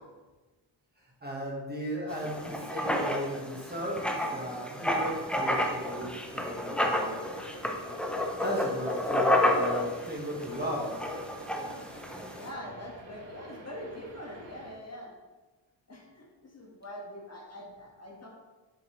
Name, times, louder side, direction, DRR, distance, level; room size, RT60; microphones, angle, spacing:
voice 1, 1.2-7.2 8.4-10.9, equal, 20° right, -3 dB, 1.3 m, -36 dB
Writing, 2.1-12.5, left 1 dB, ahead, 0.5 m, -31 dB
sound 1, 4.8-14.7, right 2 dB, 75° right, 1.2 m, -50 dB
voice 2, 12.3-15.1 15.9-18.3, left 1 dB, 35° left, -2 dB, 1.4 m, -43 dB
7.1 x 6.1 x 3.0 m, 1.2 s
wide cardioid pair, 155°, 45 cm